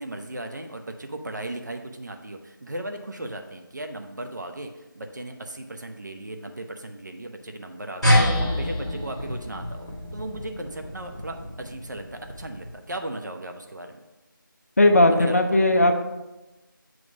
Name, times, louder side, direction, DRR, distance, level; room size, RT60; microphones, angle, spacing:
voice 1, 0.0-14.0 15.1-15.4, right 1 dB, 55° right, 5 dB, 0.8 m, -37 dB
sound 1, 8.0-12.9, equal, ahead, 1.2 m, -26 dB
voice 2, 14.8-15.9, left 1 dB, 45° left, 5 dB, 0.6 m, -17 dB
7.4 x 3.1 x 5.9 m, 1.1 s
figure-of-eight pair, 170°, 11 cm